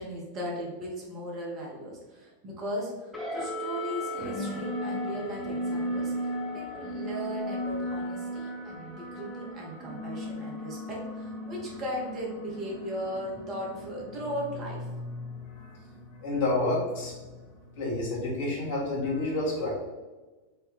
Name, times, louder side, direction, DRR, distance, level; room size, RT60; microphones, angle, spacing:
voice 1, 0.0-6.1 6.5-14.8, equal, 35° right, -3 dB, 1.2 m, -37 dB
sound 1, 3.1-17.9, equal, 10° left, 1.2 m, -36 dB
voice 2, 16.2-17.1 17.8-19.7, left 2 dB, 55° left, -4 dB, 1.4 m, -29 dB
4.3 x 2.7 x 3.7 m, 1.2 s
figure-of-eight pair, 90°, 0 cm